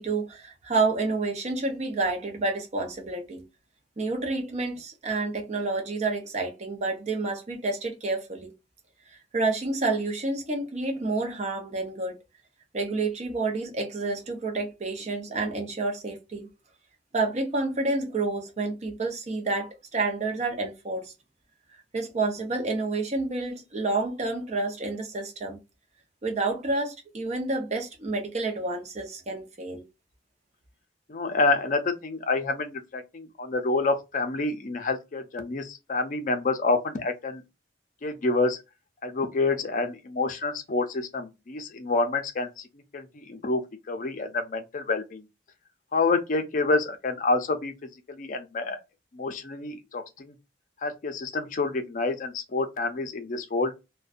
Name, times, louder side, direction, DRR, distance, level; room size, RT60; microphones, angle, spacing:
voice 1, 0.0-3.4 4.0-8.5 9.1-12.2 12.7-16.5 17.1-21.1 21.9-25.6 26.2-29.8, right 3 dB, 40° right, 0.6 m, -29 dB
voice 2, 31.1-37.4 38.0-38.6 39.0-42.6 42.9-43.6 43.9-45.2 45.9-47.7 48.1-48.8 49.1-50.3 50.8-53.7, left 3 dB, 50° left, 0.5 m, -28 dB
2.5 x 2.2 x 2.4 m
head